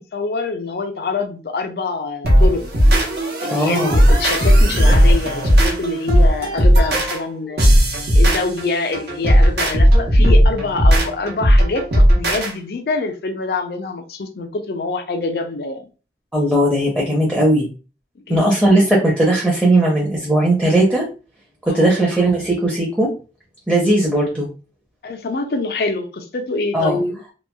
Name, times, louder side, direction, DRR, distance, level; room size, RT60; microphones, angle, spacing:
voice 1, 0.0-2.6 3.4-7.6 8.1-15.9 18.3-18.8 21.7-21.9 25.0-27.2, left 3 dB, 60° left, 0.4 m, -25 dB
sound 1, 2.2-12.5, equal, 70° right, 0.8 m, -15 dB
voice 2, 3.5-4.0 16.3-17.6 18.3-21.0 21.7-23.1 23.7-24.5 26.7-27.0, right 1 dB, 5° right, 0.6 m, -17 dB
2.9 x 2.3 x 2.2 m
head